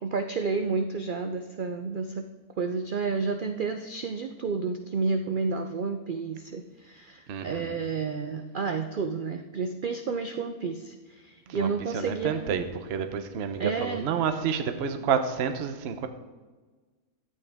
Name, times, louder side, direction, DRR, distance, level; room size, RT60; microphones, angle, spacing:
voice 1, 0.0-2.2 2.6-12.5 13.6-14.1, right 4 dB, 85° right, 7 dB, 0.4 m, -31 dB
voice 2, 7.3-7.8 11.5-16.1, right 7 dB, 55° right, 8 dB, 0.9 m, -29 dB
12.5 x 8.4 x 3.5 m, 1.3 s
omnidirectional pair, 1.6 m